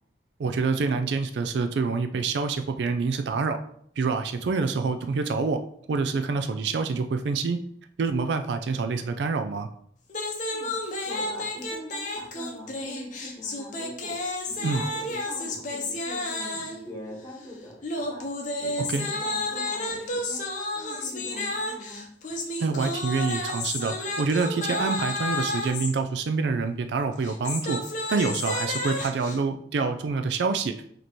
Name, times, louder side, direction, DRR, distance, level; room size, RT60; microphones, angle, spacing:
voice 1, 0.4-3.6 4.0-5.6 5.9-7.6 8.0-9.7 14.6-14.8 18.8-19.1 22.6-27.8 28.1-30.7, right 4 dB, 70° right, 8 dB, 0.4 m, -26 dB
sound 1, 10.1-16.9 17.8-25.9 27.1-29.4, left 2 dB, 45° left, 0.7 m, -31 dB
voice 2, 11.0-18.3 18.6-22.1, equal, 15° left, -3 dB, 1.2 m, -42 dB
5.1 x 2.9 x 3.0 m, 0.65 s
head